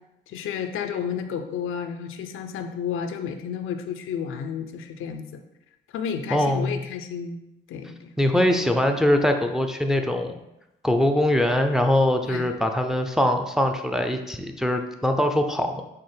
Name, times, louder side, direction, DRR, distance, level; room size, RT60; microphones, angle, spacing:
voice 1, 0.3-5.4 5.9-7.4 7.7-8.1 12.2-12.5, left 7 dB, 75° left, 7 dB, 0.4 m, -31 dB
voice 2, 6.3-6.8 8.2-10.4 10.8-15.8, left 1 dB, ahead, 6 dB, 0.4 m, -22 dB
5.5 x 2.0 x 3.3 m, 0.90 s
supercardioid pair, 60°, 21 cm